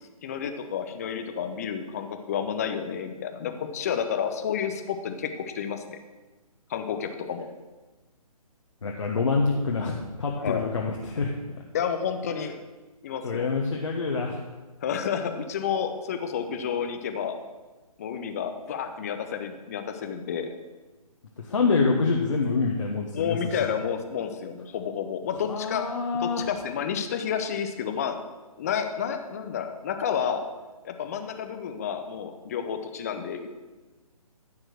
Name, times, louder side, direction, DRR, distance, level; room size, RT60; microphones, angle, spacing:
voice 1, 0.2-6.0 6.7-7.5 10.4-10.7 11.7-12.5 13.0-13.5 14.8-17.4 18.0-20.5 23.1-25.9 26.2-28.2 28.6-30.4 30.8-33.5, left 7 dB, 25° left, 7 dB, 0.8 m, -30 dB
voice 2, 8.8-11.3 13.2-14.4 21.5-23.4 25.5-26.4, left 4 dB, 55° left, -1 dB, 1.3 m, -26 dB
13.5 x 4.8 x 6.3 m, 1.2 s
figure-of-eight pair, 140°, 19 cm